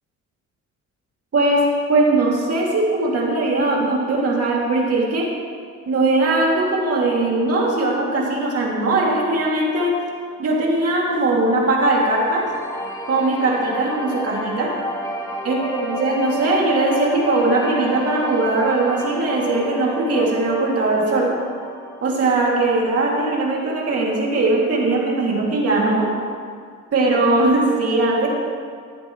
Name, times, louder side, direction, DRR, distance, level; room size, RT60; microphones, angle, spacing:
voice 1, 1.9-5.3 5.8-9.9 10.4-12.4 13.1-14.7 15.4-21.3 22.0-26.1 26.9-28.3, right 2 dB, 50° right, -3 dB, 2.7 m, -20 dB
sound 1, 11.8-22.9, equal, 10° left, 1.5 m, -31 dB
14.0 x 9.6 x 3.2 m, 2.1 s
cardioid pair, 90°, 30 cm